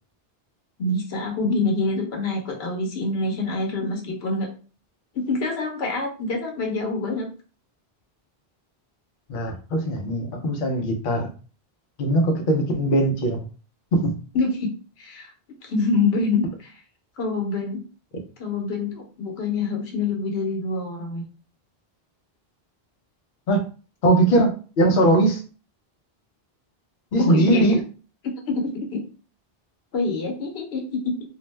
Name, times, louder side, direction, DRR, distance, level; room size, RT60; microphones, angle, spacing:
voice 1, 0.8-4.5 5.1-7.3 14.3-16.7 17.2-17.8 18.4-21.2 27.2-27.8 28.2-29.0 29.9-31.1, left 3 dB, 85° left, 2 dB, 1.0 m, -26 dB
voice 2, 9.3-11.3 12.0-13.4 13.9-14.1 23.5-23.6 24.0-25.4 27.1-27.8, right 1 dB, 65° left, 2 dB, 0.7 m, -20 dB
2.5 x 2.1 x 3.1 m, 0.37 s
omnidirectional pair, 1.0 m